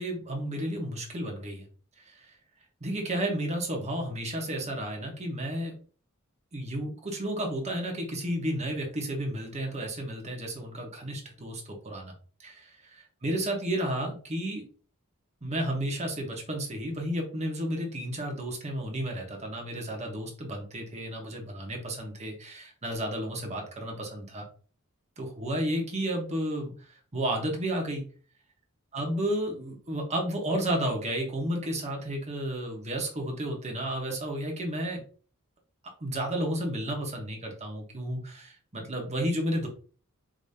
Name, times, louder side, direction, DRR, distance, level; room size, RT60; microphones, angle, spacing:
voice 1, 0.0-1.7 2.1-2.3 2.8-5.7 6.5-12.1 12.4-14.6 15.4-24.4 25.2-26.7 27.1-28.0 28.9-35.0 36.0-39.7, right 1 dB, 30° right, 1 dB, 1.2 m, -32 dB
5.0 x 2.9 x 2.8 m, 0.41 s
head